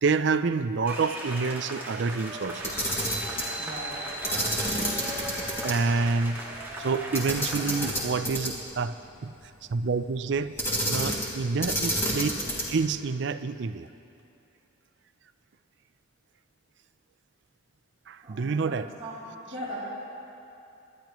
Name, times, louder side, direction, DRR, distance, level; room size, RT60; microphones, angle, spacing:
voice 1, 0.0-2.8 4.3-4.4 5.2-5.3 5.6-6.4 6.8-9.3 9.7-10.5 10.9-13.9 18.1-18.9 19.5-19.7, right 4 dB, 60° right, 12 dB, 0.5 m, -28 dB
sound 1, 0.8-7.9, right 1 dB, 10° right, 1.7 m, -37 dB
Camera, 2.6-3.5 4.2-5.7 6.1-6.2 7.1-8.7 10.6-11.3 11.6-12.8, equal, 15° left, 2.3 m, -29 dB
voice 2, 3.5-4.0 18.2-19.1 19.5-19.8, equal, 25° right, -12 dB, 3.3 m, -39 dB
25.5 x 12.0 x 3.1 m, 2.8 s
head